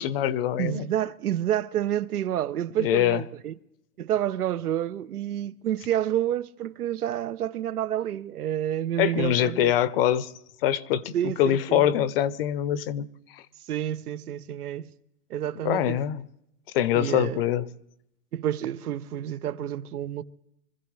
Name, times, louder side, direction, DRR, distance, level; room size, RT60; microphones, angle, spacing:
voice 1, 0.0-0.9 2.8-3.2 9.0-10.3 10.6-13.1 13.3-13.4 15.6-16.2 16.7-17.6, left 11 dB, 40° left, 0.8 m, -24 dB
voice 2, 0.6-3.5 4.0-9.7 11.1-12.0 13.7-14.9 15.3-16.0 16.9-17.4 18.3-20.2, right 11 dB, 80° right, 0.9 m, -29 dB
25.5 x 15.0 x 3.2 m
hypercardioid pair, 145°, 44 cm